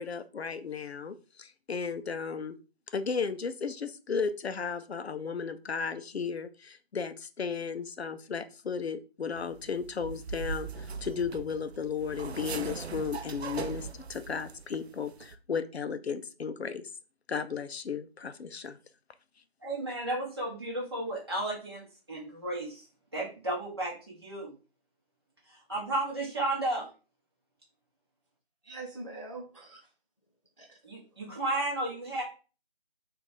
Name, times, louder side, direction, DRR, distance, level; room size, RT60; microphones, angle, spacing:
voice 1, 0.0-2.6 2.9-16.9 17.3-18.8, left 6 dB, 85° left, 11 dB, 0.5 m, -35 dB
sound 1, 9.4-14.8 15.1-15.4, right 5 dB, 85° right, 0.5 m, -40 dB
voice 2, 19.6-22.8 23.1-24.5 25.5-26.9 30.8-32.2, right 1 dB, 25° right, -5 dB, 1.1 m, -33 dB
voice 3, 28.6-29.9 30.6-30.8 32.1-32.2, right 2 dB, 30° left, 0 dB, 0.5 m, -43 dB
3.1 x 2.5 x 3.9 m, 0.35 s
figure-of-eight pair, 170°, 31 cm